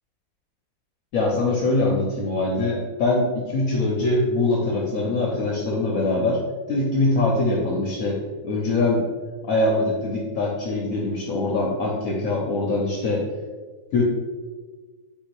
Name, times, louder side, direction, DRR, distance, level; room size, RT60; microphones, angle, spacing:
voice 1, 1.1-6.4 6.7-8.2 8.4-9.0 9.5-13.2 13.9-14.0, left 2 dB, 65° left, -2 dB, 1.0 m, -23 dB
3.9 x 2.7 x 4.5 m, 1.4 s
omnidirectional pair, 1.7 m